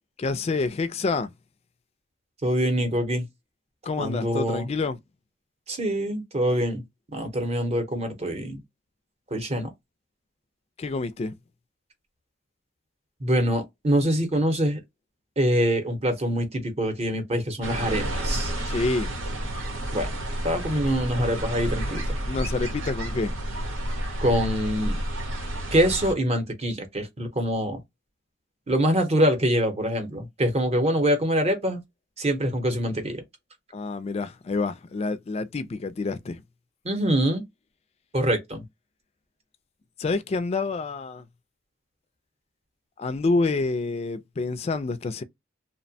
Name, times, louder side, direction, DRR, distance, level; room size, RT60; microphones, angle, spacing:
voice 1, 0.2-1.3 3.9-5.0 10.8-11.3 18.6-19.1 22.3-23.3 33.7-36.4 40.0-41.2 43.0-45.2, left 3 dB, 30° left, 0.3 m, -27 dB
voice 2, 2.4-3.3 4.0-4.7 5.7-6.8 7.1-8.6 9.3-9.7 13.2-14.8 15.4-18.5 19.9-20.1 20.4-22.0 24.2-25.0 25.7-27.8 28.7-31.8 32.2-33.2 36.8-37.4 38.1-38.6, equal, 35° right, 0.7 m, -24 dB
sound 1, 17.6-26.1, right 1 dB, 85° right, 0.9 m, -30 dB
2.8 x 2.1 x 2.6 m
head